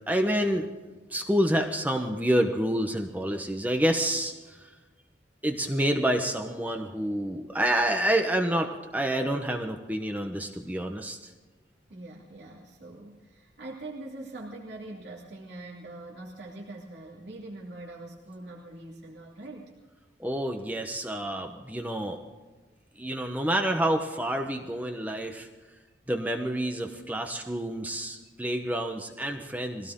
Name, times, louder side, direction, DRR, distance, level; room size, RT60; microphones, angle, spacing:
voice 1, 0.1-0.7 1.1-4.7 5.4-11.3 20.2-22.2 23.0-25.5 26.1-29.9, right 1 dB, 10° right, 4 dB, 1.0 m, -28 dB
voice 2, 11.9-19.7, right 2 dB, 70° right, -4 dB, 2.8 m, -43 dB
22.5 x 16.5 x 3.8 m, 1.3 s
head